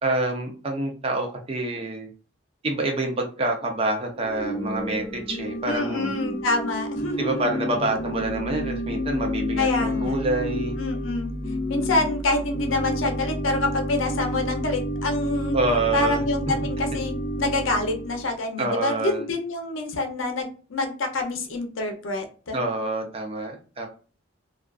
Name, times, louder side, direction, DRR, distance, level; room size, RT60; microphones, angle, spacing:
voice 1, 0.0-2.1 2.6-6.1 7.2-10.7 15.5-16.3 18.6-19.3 22.5-23.9, right 2 dB, 30° right, 3 dB, 0.5 m, -27 dB
Organ / Church bell, 4.2-18.3, equal, 35° left, 0.6 m, -30 dB
voice 2, 5.7-7.4 9.6-10.2 10.8-11.3 11.7-15.6 15.9-22.6, left 2 dB, 80° left, 4 dB, 0.6 m, -26 dB
2.4 x 2.3 x 2.3 m, 0.37 s
head